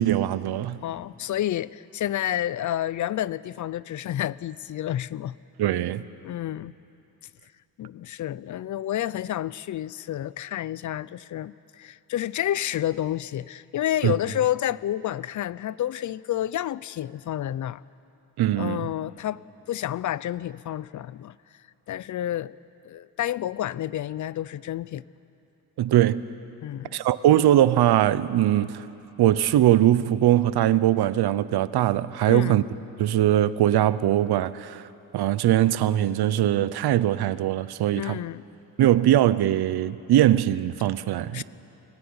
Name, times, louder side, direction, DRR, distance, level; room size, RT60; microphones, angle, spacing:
voice 1, 0.0-0.8 5.6-6.0 14.0-14.1 18.4-18.9 25.8-26.2 26.9-28.9 29.2-32.6 33.0-34.9 35.1-38.2 38.8-41.4, right 12 dB, 80° right, 0.7 m, -21 dB
voice 2, 0.8-5.4 6.2-6.7 7.8-17.8 18.5-19.4 19.7-21.4 21.9-22.5 22.8-25.0 26.6-27.0 32.3-32.6 37.9-38.4 41.3-41.4, left 12 dB, 55° left, 0.4 m, -29 dB
24.5 x 16.5 x 9.7 m
wide cardioid pair, 170°, 38 cm